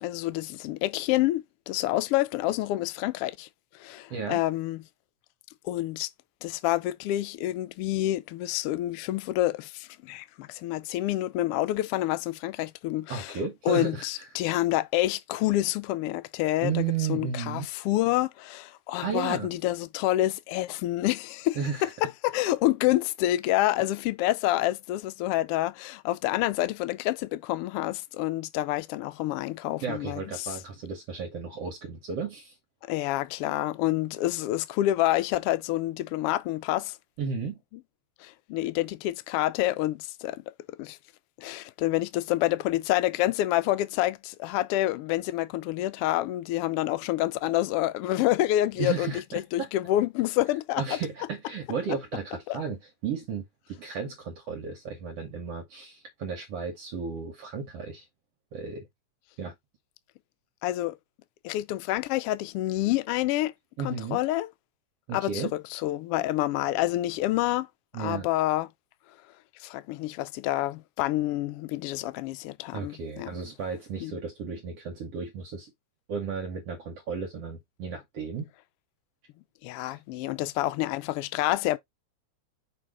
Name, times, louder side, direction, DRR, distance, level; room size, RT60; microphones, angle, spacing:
voice 1, 0.0-3.5 3.7-4.8 5.6-6.1 6.4-13.4 13.7-16.8 17.1-30.5 32.9-37.0 38.2-40.5 40.8-41.0 41.4-51.0 52.5-52.6 60.6-61.0 61.4-63.5 63.8-64.5 65.1-67.7 67.9-68.7 69.6-73.3 74.0-74.1 79.6-81.8, left 15 dB, 90° left, 1.3 m, -28 dB
voice 2, 4.1-4.4 13.1-14.3 16.6-17.7 19.0-19.5 21.6-21.9 29.8-32.5 37.2-37.6 48.8-49.2 49.6-49.7 50.8-58.1 58.5-58.9 59.4-59.5 63.8-64.2 65.1-65.5 67.9-68.3 72.7-75.7 76.1-78.5, right 6 dB, 60° right, 2.1 m, -34 dB
6.2 x 3.3 x 4.7 m
omnidirectional pair, 3.4 m